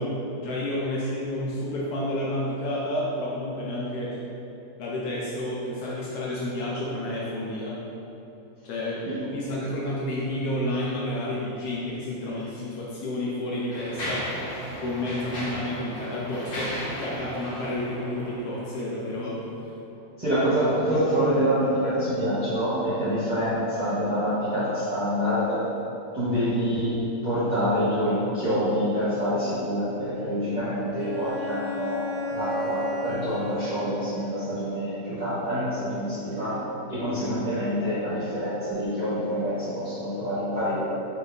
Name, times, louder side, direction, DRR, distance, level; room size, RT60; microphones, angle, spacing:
voice 1, 0.0-4.2 4.8-7.8 8.6-14.3 14.8-19.4, left 1 dB, 75° left, -5 dB, 1.1 m, -30 dB
Mechanisms, 12.3-12.5 13.2-19.0, equal, 45° left, 0.8 m, -36 dB
voice 2, 20.2-25.6 26.1-36.6 36.9-40.8, equal, 30° right, -15 dB, 1.3 m, -26 dB
Bowed string instrument, 31.0-34.5, left 1 dB, 80° right, 1.4 m, -33 dB
5.4 x 3.3 x 2.6 m, 2.9 s
omnidirectional pair, 1.8 m